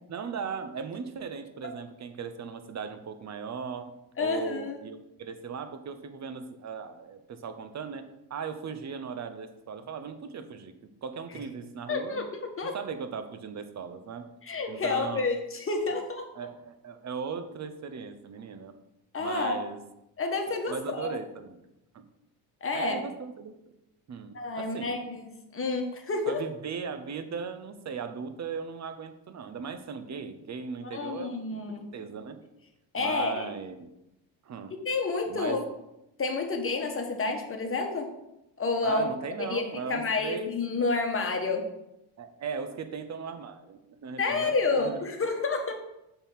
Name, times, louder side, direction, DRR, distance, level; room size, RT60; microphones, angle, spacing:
voice 1, 0.1-3.9 4.2-10.7 11.0-12.3 12.6-14.3 14.7-15.3 15.9-16.0 16.4-18.8 19.2-19.8 20.7-21.6 21.9-22.1 22.7-23.6 24.1-25.0 26.3-31.4 31.7-32.4 33.0-33.9 34.4-34.7 35.3-35.6 38.8-40.5 42.2-45.1, right 6 dB, 35° right, 10 dB, 0.8 m, -38 dB
voice 2, 4.2-4.8 11.9-12.3 12.6-12.8 14.4-16.3 19.1-19.6 20.2-21.1 22.6-23.0 24.3-26.4 30.9-31.9 32.9-33.5 34.8-35.6 36.2-38.1 38.6-39.0 39.4-39.6 39.9-41.6 44.2-45.7, left 3 dB, 25° left, 3 dB, 1.3 m, -29 dB
7.0 x 3.7 x 5.6 m, 0.89 s
supercardioid pair, 95°, 49 cm